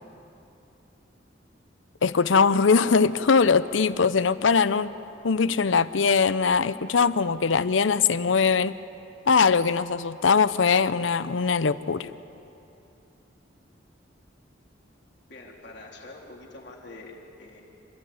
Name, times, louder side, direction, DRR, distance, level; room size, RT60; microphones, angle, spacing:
voice 1, 2.0-4.9 5.2-8.8 9.3-12.1, left 5 dB, 85° left, 15 dB, 0.7 m, -21 dB
voice 2, 15.3-17.6, left 2 dB, 60° left, -2 dB, 3.8 m, -45 dB
26.0 x 14.5 x 9.6 m, 2.8 s
head